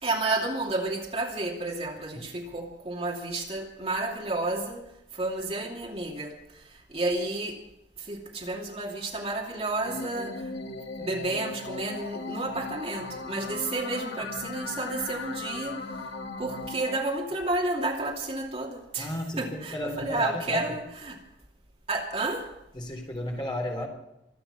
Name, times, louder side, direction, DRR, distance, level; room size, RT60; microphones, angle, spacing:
voice 1, 0.0-7.6 8.0-10.5 11.0-16.1 16.4-21.2 21.9-22.5, right 2 dB, 35° right, 2.6 m, -31 dB
sound 1, 9.8-17.0, left 3 dB, 85° left, 1.6 m, -37 dB
voice 2, 19.0-20.7 22.7-23.9, left 1 dB, 25° left, 3.9 m, -33 dB
25.5 x 9.0 x 5.9 m
head